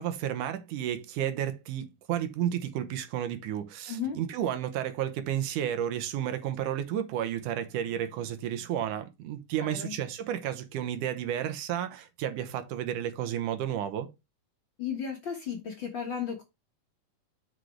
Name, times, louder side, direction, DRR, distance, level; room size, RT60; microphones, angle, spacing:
voice 1, 0.0-14.1, right 10 dB, 80° right, 2.4 m, -32 dB
voice 2, 3.9-4.2 9.6-9.9 14.8-16.4, left 7 dB, 50° left, 1.7 m, -34 dB
6.4 x 6.3 x 3.3 m
omnidirectional pair, 3.6 m